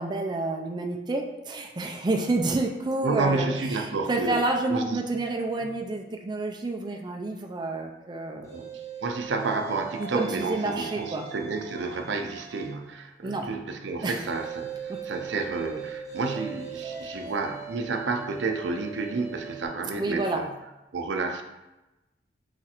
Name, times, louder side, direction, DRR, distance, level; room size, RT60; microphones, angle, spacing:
voice 1, 0.0-8.7 10.0-11.3 13.2-13.5 14.0-14.2 14.9-15.0 17.0-17.1 20.0-20.5, right 2 dB, 25° right, 2 dB, 0.4 m, -29 dB
voice 2, 3.0-4.4 4.7-5.2 5.6-5.7 8.5-20.5 20.9-21.4, right 3 dB, 80° right, 5 dB, 0.5 m, -31 dB
sound 1, 8.4-12.8 14.2-19.7, right 7 dB, 15° left, 0.8 m, -40 dB
4.9 x 2.4 x 4.3 m, 1.0 s
head